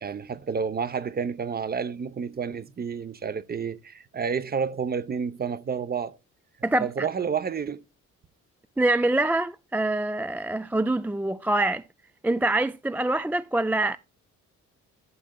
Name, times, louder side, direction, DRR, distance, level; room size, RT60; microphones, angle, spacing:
voice 1, 0.0-6.2 6.8-7.8, right 6 dB, 30° right, 0.7 m, -30 dB
voice 2, 6.6-7.1 8.8-11.8 12.2-14.0, right 2 dB, 5° right, 0.3 m, -25 dB
12.5 x 6.5 x 2.2 m
cardioid pair, 90°, 30 cm